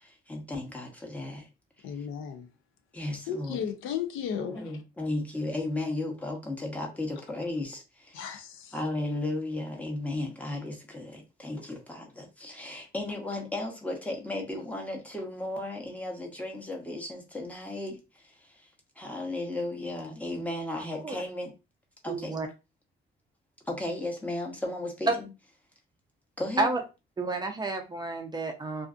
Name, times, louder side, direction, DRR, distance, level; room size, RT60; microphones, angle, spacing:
voice 1, 0.0-1.5 2.9-3.6 4.3-8.2 8.7-18.7 19.0-21.5 22.0-22.5 23.7-25.3 26.4-26.7, left 2 dB, 5° left, 0.7 m, -35 dB
voice 2, 1.8-2.5 3.3-4.6 8.1-8.8, left 8 dB, 90° left, 0.5 m, -34 dB
voice 3, 22.1-22.5 25.1-25.2 26.6-26.8 27.2-28.9, right 3 dB, 20° right, 0.4 m, -29 dB
2.4 x 2.4 x 2.3 m
cardioid pair, 110°, 20 cm